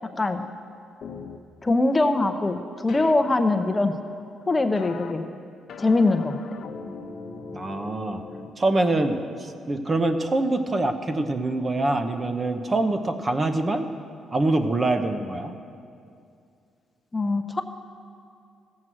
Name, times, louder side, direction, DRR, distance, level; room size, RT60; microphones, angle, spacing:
voice 1, 0.0-0.4 1.6-3.9 4.5-5.3 5.8-6.4 17.1-17.6, left 2 dB, 20° left, 7 dB, 0.7 m, -22 dB
sound 1, 1.0-1.4 2.9-3.1 4.8-5.1 5.7-8.5, left 5 dB, 60° left, 0.8 m, -39 dB
voice 2, 7.5-8.2 8.6-13.9 14.3-15.5, right 2 dB, 30° right, 7 dB, 0.9 m, -24 dB
15.0 x 7.5 x 6.3 m, 2.4 s
cardioid pair, 90°, 0 cm